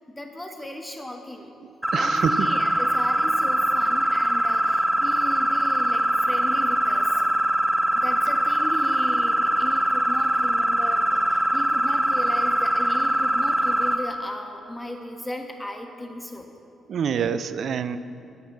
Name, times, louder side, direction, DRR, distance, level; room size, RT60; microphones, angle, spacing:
voice 1, 0.1-1.5 2.0-7.2 7.9-16.5, left 1 dB, 15° left, 4 dB, 1.4 m, -36 dB
voice 2, 1.6-2.5 7.2-7.3 16.9-18.0, right 7 dB, 65° right, 13 dB, 0.5 m, -27 dB
sound 1, 1.8-14.0, right 1 dB, 5° right, 1.5 m, -22 dB
10.0 x 9.4 x 8.0 m, 2.8 s
hypercardioid pair, 50°, 0 cm